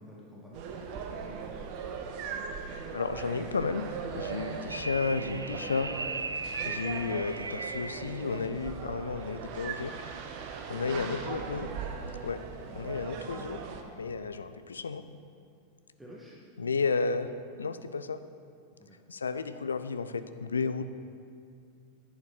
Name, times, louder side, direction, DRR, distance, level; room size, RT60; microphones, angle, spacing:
voice 1, 0.0-1.6 4.7-4.9 6.4-6.6 16.0-16.3 18.8-19.0, equal, 5° right, -5 dB, 1.7 m, -50 dB
sound 1, 0.5-13.8, right 6 dB, 45° right, 1.0 m, -39 dB
voice 2, 2.9-5.9 6.7-9.9 10.7-11.7 12.2-12.4 12.7-13.6 14.0-15.0 16.6-17.3 17.6-18.2 19.1-20.8, left 4 dB, 75° left, 11 dB, 0.5 m, -32 dB
sound 2, 4.7-8.2, right 3 dB, 80° right, 0.3 m, -38 dB
11.0 x 8.6 x 5.7 m, 2.3 s
figure-of-eight pair, 90°, 0 cm